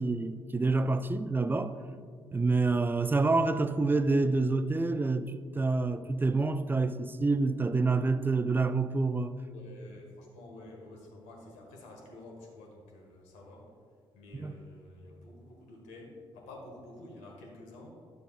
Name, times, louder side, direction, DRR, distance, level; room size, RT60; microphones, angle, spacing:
voice 1, 0.0-1.8 2.3-9.3 14.3-14.5, right 3 dB, 15° right, 0.4 m, -27 dB
voice 2, 9.5-13.7 14.1-17.9, left 2 dB, 75° left, 1.5 m, -50 dB
10.5 x 6.7 x 2.5 m
hypercardioid pair, 45°, 12 cm